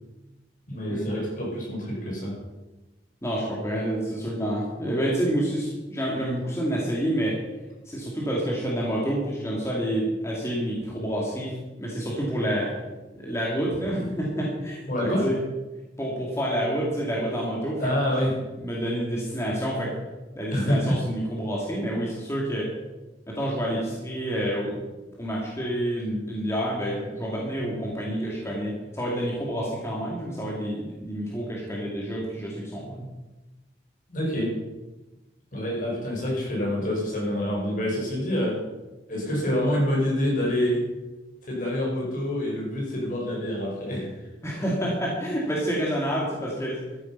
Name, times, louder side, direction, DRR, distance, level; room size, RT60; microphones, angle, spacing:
voice 1, 0.7-2.4 14.9-15.3 17.8-18.4 20.5-20.9 34.1-34.5 35.5-38.7 39.1-40.9 41.4-44.1, equal, 50° left, -2 dB, 5.0 m, -26 dB
voice 2, 3.2-7.4 7.8-12.7 13.1-15.4 16.0-17.8 18.6-19.9 20.3-22.7 23.3-24.8 25.2-33.1 44.4-46.8, equal, 15° left, -4 dB, 2.8 m, -28 dB
13.5 x 11.0 x 5.5 m, 1.1 s
head